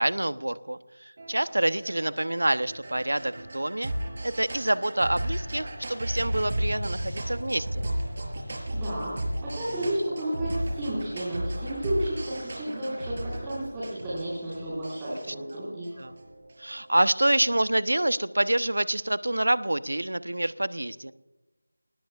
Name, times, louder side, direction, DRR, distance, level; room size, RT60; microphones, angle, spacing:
voice 1, 0.0-3.9 4.2-7.9 15.1-15.3 16.0-16.1 16.6-21.1, right 1 dB, 75° right, 14 dB, 1.0 m, -27 dB
sound 1, 1.2-16.7, right 1 dB, 40° right, 4.5 m, -35 dB
voice 2, 8.7-9.1 9.4-15.9, right 1 dB, 10° right, -10 dB, 5.4 m, -32 dB
26.0 x 19.5 x 2.5 m, 1.1 s
figure-of-eight pair, 170°, 0 cm